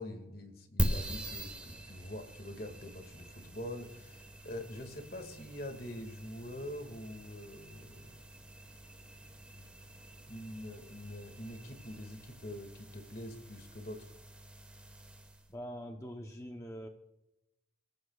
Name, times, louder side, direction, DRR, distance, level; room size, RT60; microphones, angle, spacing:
voice 1, 0.0-8.2 9.5-9.8 10.3-14.0, left 1 dB, 55° left, 6 dB, 2.0 m, -45 dB
sound 1, 0.8-15.5, right 1 dB, 5° right, 1.3 m, -43 dB
voice 2, 15.5-16.9, equal, 15° left, 3 dB, 0.8 m, -43 dB
29.0 x 14.5 x 2.4 m, 0.91 s
head